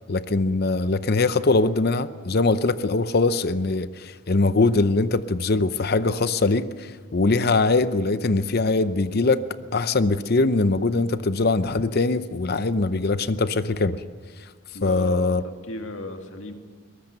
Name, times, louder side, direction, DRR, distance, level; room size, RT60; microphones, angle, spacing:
voice 1, 0.1-9.4 9.7-14.0 14.8-15.4, left 3 dB, 45° left, 13 dB, 0.7 m, -22 dB
voice 2, 14.7-16.5, left 1 dB, 65° left, 5 dB, 2.1 m, -35 dB
22.5 x 19.5 x 6.8 m, 1.5 s
head